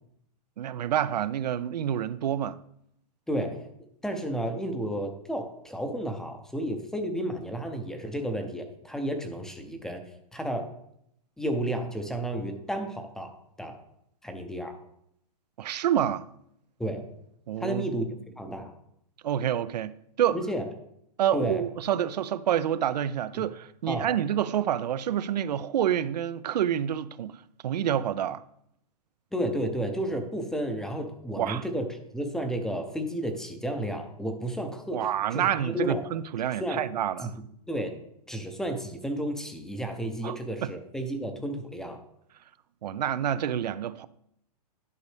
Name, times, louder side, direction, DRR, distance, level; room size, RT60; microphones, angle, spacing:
voice 1, 0.6-2.6 15.6-16.3 17.5-17.9 19.2-20.4 21.2-27.4 27.6-28.4 31.4-31.6 34.9-37.4 40.2-40.4 40.6-40.7 42.8-44.1, right 10 dB, 80° right, 0.5 m, -28 dB
voice 2, 3.3-3.6 4.0-10.0 10.3-10.7 11.4-13.8 14.2-14.8 16.8-17.0 17.6-18.1 18.4-18.7 20.3-20.7 21.3-21.6 23.3-23.5 23.9-24.1 29.3-36.0 36.6-36.9 37.2-38.0 38.3-42.0, right 1 dB, 5° left, 0.6 m, -32 dB
11.0 x 5.2 x 3.3 m
hypercardioid pair, 150°, 21 cm